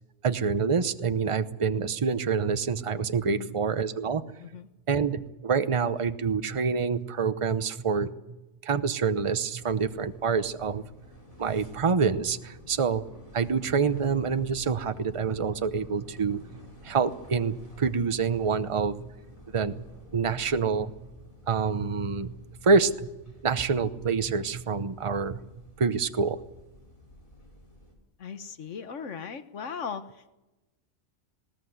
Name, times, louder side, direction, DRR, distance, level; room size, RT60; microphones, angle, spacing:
voice 1, 0.2-4.2 4.9-8.1 8.6-10.8 11.4-13.0 13.3-16.4 16.8-19.1 19.5-19.9 20.1-20.9 21.5-22.3 22.6-23.1 23.4-25.4 25.8-26.4, right 5 dB, 30° right, 11 dB, 0.8 m, -26 dB
voice 2, 3.2-3.6 4.4-4.7 28.2-30.3, left 6 dB, 80° left, 11 dB, 1.4 m, -38 dB
sound 1, 9.6-27.9, left 1 dB, 30° left, 4.9 m, -51 dB
20.0 x 18.0 x 8.1 m, 1.0 s
omnidirectional pair, 1.3 m